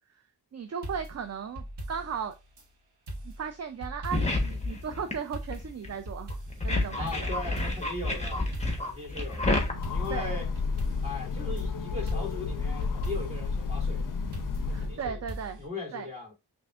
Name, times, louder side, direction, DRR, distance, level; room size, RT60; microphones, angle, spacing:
voice 1, 0.5-2.3 3.2-6.3 6.6-7.3 10.1-10.4 14.7-15.6 15.9-16.1, right 7 dB, 40° right, 0.5 m, -36 dB
sound 1, 0.8-2.7 3.1-4.5 4.8-4.9 5.3-7.2 7.6-9.0 9.3-9.4 9.8-11.7 12.1-13.5 14.3-15.7, right 1 dB, 75° right, 1.3 m, -41 dB
sound 2, 4.1-5.1 5.5-5.9 6.3-9.7, left 2 dB, 15° left, 1.1 m, -29 dB
voice 2, 7.0-8.5 8.8-10.5 11.0-14.2 14.7-15.2 15.6-16.3, left 3 dB, 15° right, 2.0 m, -39 dB
Train, 9.5-15.2, left 4 dB, 50° left, 0.5 m, -31 dB
5.8 x 2.6 x 2.4 m
wide cardioid pair, 75°, 41 cm